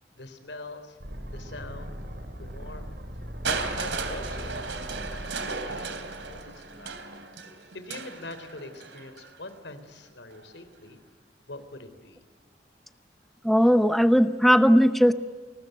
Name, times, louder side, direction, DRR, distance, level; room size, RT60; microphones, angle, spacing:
voice 1, 0.2-1.0 1.3-2.0 2.4-2.9 3.4-7.0 7.7-11.0 11.5-12.2, left 2 dB, 80° left, 10 dB, 3.6 m, -43 dB
sound 1, 1.0-7.0, equal, 65° right, 4.3 m, -40 dB
Crushing, 3.4-9.4 10.3-10.4, right 4 dB, 90° right, 3.2 m, -35 dB
voice 2, 13.4-15.1, equal, ahead, 11 dB, 0.7 m, -18 dB
29.5 x 20.5 x 9.3 m, 1.5 s
head